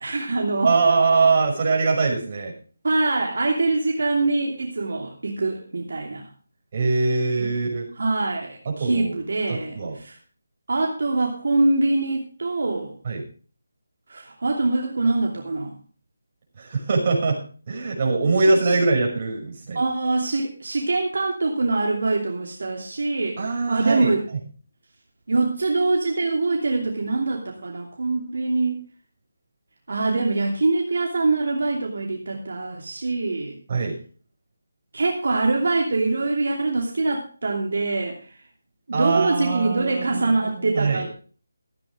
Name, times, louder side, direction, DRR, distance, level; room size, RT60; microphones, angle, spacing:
voice 1, 0.0-0.7 2.8-6.3 7.4-7.5 8.0-10.2 10.7-13.0 14.1-15.7 18.4-18.8 19.7-24.2 25.3-28.8 29.9-33.6 34.9-38.3 38.9-41.1, right 3 dB, 65° right, 0 dB, 2.9 m, -24 dB
voice 2, 0.6-2.5 6.7-7.9 8.8-9.1 9.7-9.9 13.0-13.2 16.6-17.4 17.7-19.8 23.4-24.1 33.7-33.9 38.9-40.3 40.6-41.0, right 3 dB, 35° right, -1 dB, 6.1 m, -22 dB
15.0 x 8.7 x 5.1 m, 0.39 s
figure-of-eight pair, 170°, 0 cm